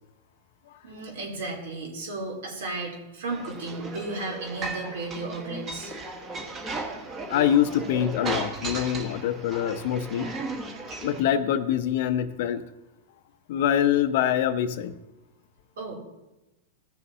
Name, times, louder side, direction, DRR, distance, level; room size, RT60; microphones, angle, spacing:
voice 1, 0.8-5.9 15.8-15.9, right 3 dB, 80° right, -1 dB, 2.8 m, -34 dB
sound 1, 3.3-11.2, right 2 dB, 25° right, 1.3 m, -36 dB
voice 2, 7.3-10.3 11.0-12.6 13.5-15.0, left 10 dB, 60° left, 11 dB, 0.7 m, -25 dB
16.0 x 6.9 x 2.7 m, 0.99 s
supercardioid pair, 145°, 0 cm